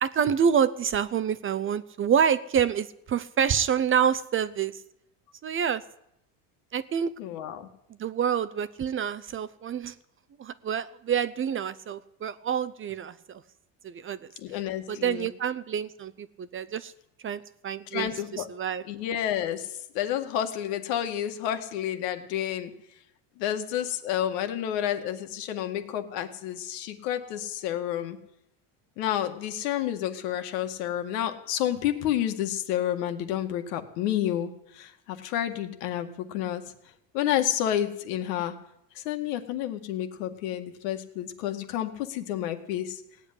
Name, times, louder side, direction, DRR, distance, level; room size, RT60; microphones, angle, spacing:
voice 1, 0.0-4.8 5.4-5.8 6.7-7.1 8.0-9.9 10.4-13.4 13.8-14.3 14.9-16.9 17.2-18.8, right 8 dB, 25° right, 15 dB, 0.6 m, -27 dB
voice 2, 7.2-7.7 14.4-15.3 17.9-18.5 18.9-22.7 23.4-28.2 29.0-36.7 37.1-38.5 39.0-43.0, left 11 dB, 85° left, 7 dB, 2.0 m, -30 dB
17.5 x 8.4 x 9.9 m, 0.80 s
cardioid pair, 130°, 47 cm